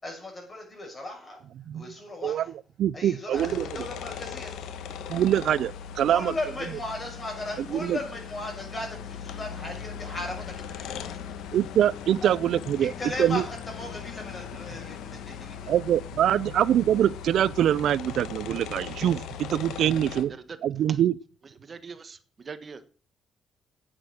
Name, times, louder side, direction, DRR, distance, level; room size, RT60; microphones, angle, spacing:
voice 1, 0.0-1.4 1.7-2.5 2.9-4.5 6.0-11.3 12.2-12.3 12.8-15.7, left 2 dB, 30° left, 6.3 m, -37 dB
voice 2, 2.8-3.7 5.1-6.3 7.7-8.0 11.5-12.9 13.2-13.4 15.7-20.3 20.6-21.1, right 10 dB, 70° right, 0.5 m, -24 dB
ceiling fan, 3.3-20.2, left 8 dB, 85° left, 1.2 m, -39 dB
voice 3, 20.0-20.6 20.9-21.0 21.6-22.9, right 5 dB, 40° right, 1.2 m, -42 dB
8.9 x 8.8 x 6.4 m
cardioid pair, 90°, 0 cm